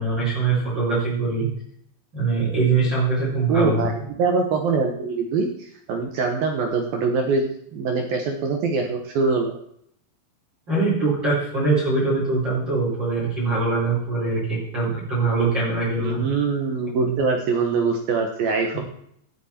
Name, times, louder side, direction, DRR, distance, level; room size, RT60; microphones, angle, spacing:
voice 1, 0.0-1.5 2.1-3.9 10.7-16.2 17.0-17.2, right 3 dB, 25° right, -7 dB, 4.3 m, -22 dB
voice 2, 3.5-9.6 16.0-18.8, right 4 dB, 75° right, 3 dB, 2.2 m, -23 dB
17.0 x 8.8 x 4.4 m, 0.68 s
omnidirectional pair, 5.8 m